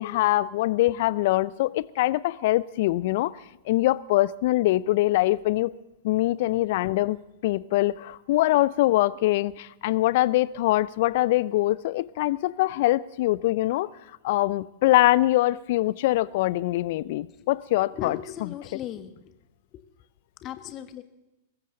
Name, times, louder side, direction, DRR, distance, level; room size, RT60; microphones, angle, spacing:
voice 1, 0.0-3.3 3.7-5.7 6.0-7.2 7.4-13.9 14.2-18.5, left 17 dB, 55° left, 20 dB, 0.5 m, -23 dB
voice 2, 18.0-19.3 20.4-21.0, left 10 dB, 35° left, 10 dB, 1.4 m, -37 dB
22.0 x 14.5 x 3.9 m, 0.95 s
figure-of-eight pair, 100°, 0 cm